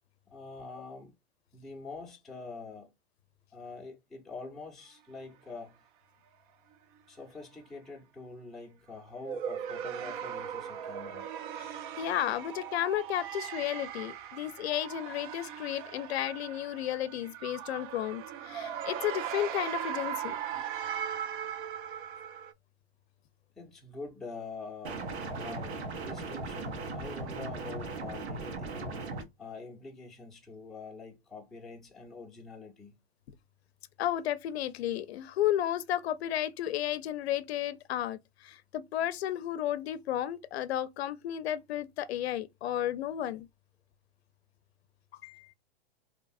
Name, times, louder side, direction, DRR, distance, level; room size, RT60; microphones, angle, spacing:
voice 1, 0.3-1.1 1.5-2.9 3.5-5.8 7.1-11.3 23.6-25.0 25.4-29.0 29.4-33.0, left 4 dB, ahead, 0.5 m, -45 dB
sound 1, 9.2-22.5, right 9 dB, 55° right, 0.5 m, -39 dB
voice 2, 11.6-20.4 34.0-43.5 45.2-45.5, left 12 dB, 75° left, 0.5 m, -33 dB
sound 2, 24.8-29.2, right 3 dB, 90° right, 0.9 m, -38 dB
2.7 x 2.5 x 2.3 m
hypercardioid pair, 130°, 32 cm